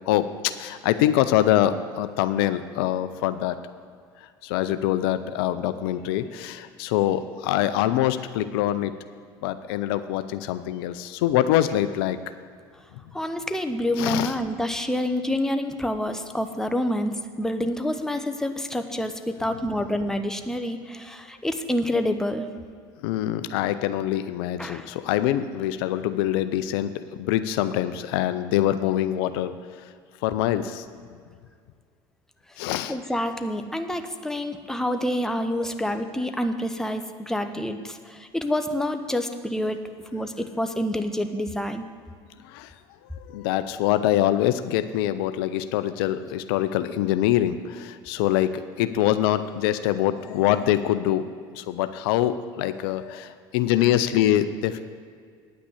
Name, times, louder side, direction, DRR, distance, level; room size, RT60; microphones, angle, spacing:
voice 1, 0.0-3.6 4.4-8.9 9.4-12.2 14.0-14.3 23.0-29.5 30.2-30.8 32.6-33.0 42.5-42.7 43.3-51.3 51.5-54.8, left 12 dB, 75° left, 11 dB, 0.5 m, -24 dB
voice 2, 13.1-22.5 24.6-24.9 32.9-39.8 40.1-41.8, left 1 dB, 5° left, 7 dB, 0.9 m, -27 dB
9.6 x 6.0 x 8.3 m, 2.1 s
hypercardioid pair, 80°, 12 cm